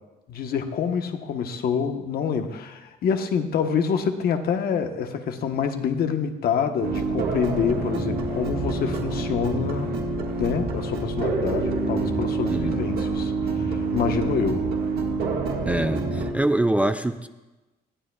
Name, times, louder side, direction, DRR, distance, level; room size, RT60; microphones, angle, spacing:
voice 1, 0.3-9.9 10.4-14.7, left 6 dB, 70° left, 6 dB, 1.1 m, -26 dB
sound 1, 6.8-16.3, right 3 dB, 70° right, 1.7 m, -27 dB
voice 2, 12.5-12.8 15.7-17.3, right 1 dB, 10° right, 10 dB, 0.3 m, -24 dB
20.0 x 14.5 x 2.3 m, 1.1 s
cardioid pair, 145°, 17 cm